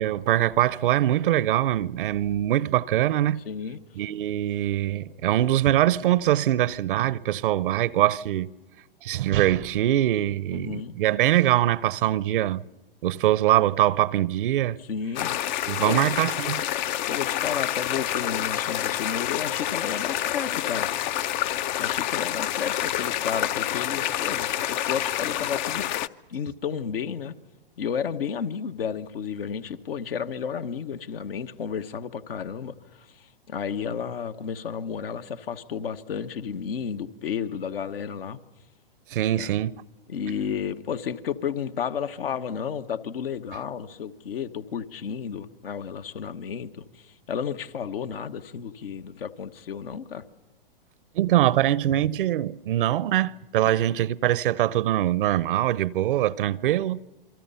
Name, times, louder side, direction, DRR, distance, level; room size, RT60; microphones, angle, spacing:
voice 1, 0.0-3.4 4.0-8.5 9.0-12.6 13.0-14.8 15.7-16.6 39.1-39.7 51.1-57.0, right 13 dB, 60° right, 0.7 m, -23 dB
voice 2, 3.4-3.8 10.5-10.9 14.8-15.4 15.8-16.1 17.1-20.9 21.8-25.9 26.3-27.4 27.8-38.4 39.3-39.5 40.1-50.2 53.6-53.8, left 7 dB, 70° left, 1.4 m, -32 dB
sound 1, 15.1-26.1, left 12 dB, 50° left, 0.7 m, -28 dB
28.0 x 23.0 x 5.6 m
hypercardioid pair, 120°, 29 cm